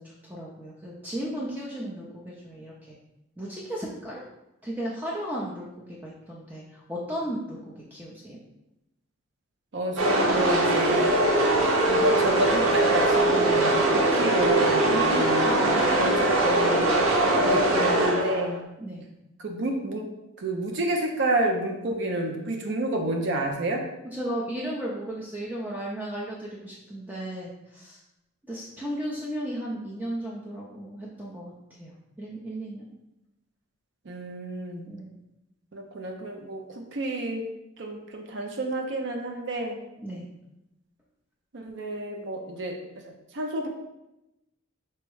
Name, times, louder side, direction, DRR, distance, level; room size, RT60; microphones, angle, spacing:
voice 1, 0.0-3.0 3.4-4.2 4.6-8.4 14.8-15.6 18.8-19.0 24.1-28.0 28.5-32.9 34.9-35.2 40.0-40.3, right 1 dB, 10° right, -5 dB, 0.5 m, -35 dB
voice 2, 9.7-11.1 11.9-15.5 16.0-16.9 17.3-18.6 19.4-20.1 20.4-23.8 34.1-34.8 35.7-36.6 36.9-37.5 37.8-39.8 41.5-42.8 43.0-43.7, right 1 dB, 60° right, 2 dB, 0.5 m, -29 dB
sound 1, 10.0-18.6, right 1 dB, 85° right, 0.8 m, -22 dB
4.4 x 2.0 x 4.6 m, 0.92 s
head